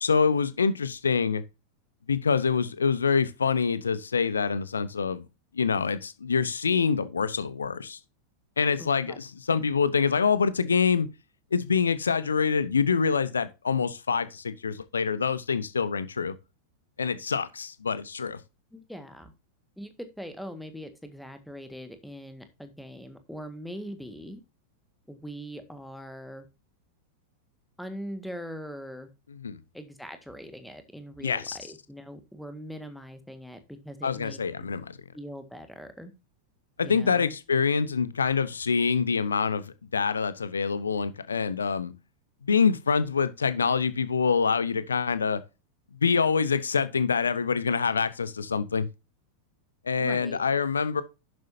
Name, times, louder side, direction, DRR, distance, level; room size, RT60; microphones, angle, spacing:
voice 1, 0.0-1.4 2.1-5.3 5.5-8.0 8.6-11.1 11.5-16.3 17.0-18.4 29.4-29.6 31.2-31.6 34.0-35.0 36.8-41.9 42.4-45.4 46.0-48.9 49.8-51.0, left 5 dB, 70° left, 0.8 m, -26 dB
voice 2, 8.8-9.2 18.7-19.3 19.8-24.4 25.1-26.5 27.8-29.1 29.7-34.7 35.1-36.1 36.8-37.3 50.0-50.4, equal, ahead, 1.7 m, -41 dB
11.5 x 7.9 x 2.7 m
figure-of-eight pair, 90°, 0 cm